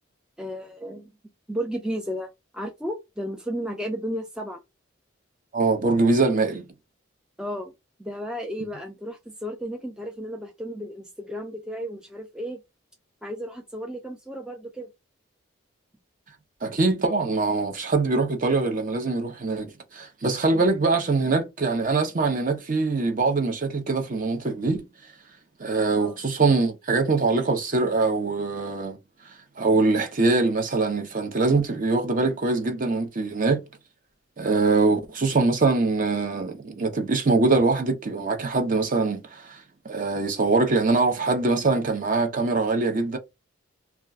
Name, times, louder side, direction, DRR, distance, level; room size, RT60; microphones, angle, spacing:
voice 1, 0.4-1.1 1.5-2.3 2.5-4.6 7.4-7.7 8.0-12.6 13.2-14.9 25.9-26.2, equal, 5° right, 0.3 m, -33 dB
voice 2, 5.5-6.7 16.6-24.9 25.6-29.0 29.2-33.6 34.4-43.2, right 3 dB, 40° right, 0.6 m, -23 dB
2.3 x 2.2 x 3.5 m
head